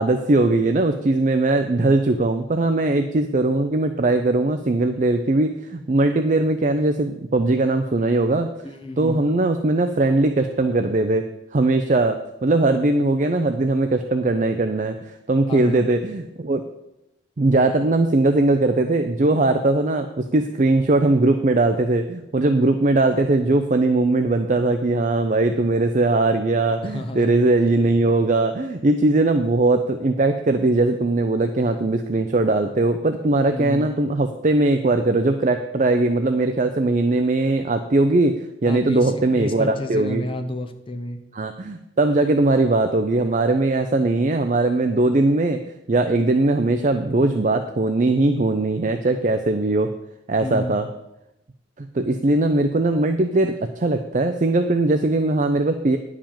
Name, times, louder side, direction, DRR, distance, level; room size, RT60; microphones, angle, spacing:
voice 1, 0.0-8.5 9.0-16.6 17.4-40.2 41.3-45.6 45.9-49.9 50.3-50.9 51.8-56.0, right 2 dB, 40° right, 7 dB, 0.5 m, -20 dB
voice 2, 8.6-9.2 15.5-15.9 26.8-27.4 33.5-33.9 38.7-41.2 50.4-50.8, left 1 dB, 25° left, 5 dB, 0.8 m, -30 dB
10.5 x 4.9 x 7.3 m, 0.89 s
head